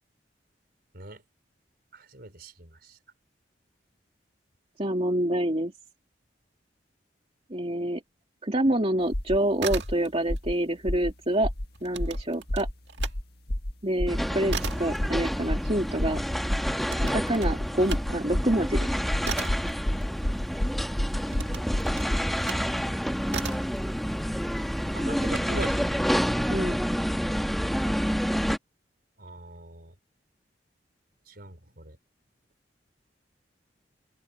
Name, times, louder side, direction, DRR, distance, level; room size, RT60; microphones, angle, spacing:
voice 1, 1.9-3.0 24.9-25.9 29.2-29.9 31.3-32.0, right 2 dB, 60° right, 4.9 m, -41 dB
voice 2, 4.8-5.7 7.5-8.0 8.4-11.5 11.8-12.7 13.8-16.2 17.0-19.0 26.5-26.8, right 1 dB, 35° right, 2.7 m, -27 dB
sound 1, 9.1-9.4 9.7-9.9 10.3-10.5 10.9-11.1 11.4-11.7 12.0-12.2 12.5-12.7 13.0-13.2 13.5-13.7 14.0-14.2 14.5-14.7 15.0-15.2 15.5-15.7 16.0-16.2 16.5-16.7 17.0-22.3, left 1 dB, 65° left, 1.9 m, -29 dB
sound 2, 9.4-10.4 10.7-13.2 13.6-20.6 21.2-22.7 23.3-23.8, right 5 dB, 75° right, 1.9 m, -38 dB
sound 3, 14.1-28.6, equal, ahead, 1.4 m, -29 dB
open air
head